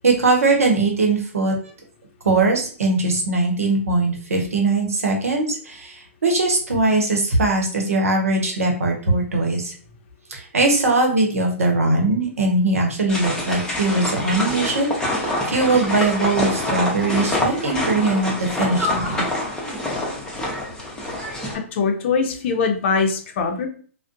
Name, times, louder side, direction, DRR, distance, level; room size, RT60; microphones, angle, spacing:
voice 1, 0.0-1.5 2.2-9.7 10.3-19.2, right 2 dB, 85° right, 2 dB, 0.8 m, -20 dB
sound 1, 13.1-21.5, left 1 dB, 10° left, 0.7 m, -26 dB
voice 2, 21.5-23.7, left 5 dB, 50° left, 4 dB, 0.6 m, -22 dB
2.4 x 2.1 x 2.5 m, 0.42 s
hypercardioid pair, 125°, 8 cm